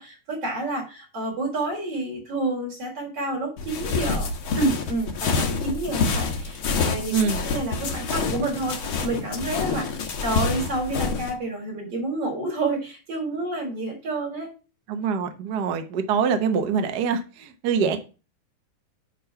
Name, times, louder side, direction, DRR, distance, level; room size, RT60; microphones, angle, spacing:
voice 1, 0.0-4.3 4.6-14.5, right 2 dB, 50° right, -2 dB, 4.7 m, -29 dB
sound 1, 3.6-11.3, left 4 dB, 55° left, 1.7 m, -27 dB
voice 2, 14.9-18.0, right 6 dB, 85° right, 7 dB, 0.9 m, -24 dB
9.1 x 3.9 x 5.6 m, 0.32 s
omnidirectional pair, 3.4 m